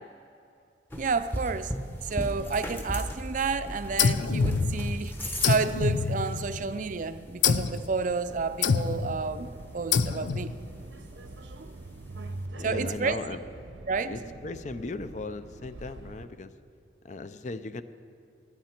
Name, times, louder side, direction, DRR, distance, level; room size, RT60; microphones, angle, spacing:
sound 1, 0.9-12.5, equal, 10° left, 0.9 m, -38 dB
voice 1, 0.9-1.7 2.0-10.5 12.2-13.2 13.9-14.2, right 4 dB, 45° right, 12 dB, 0.5 m, -31 dB
sound 2, 4.0-5.0 5.4-6.7 7.4-7.9 8.6-9.2 9.9-10.5, left 6 dB, 90° left, 0.5 m, -26 dB
Subway metro underground, 8.3-16.3, right 2 dB, 80° right, 0.8 m, -46 dB
voice 2, 12.5-13.4 14.1-16.5 17.0-17.8, left 3 dB, 40° left, 12 dB, 0.5 m, -37 dB
18.5 x 12.0 x 4.4 m, 2.6 s
head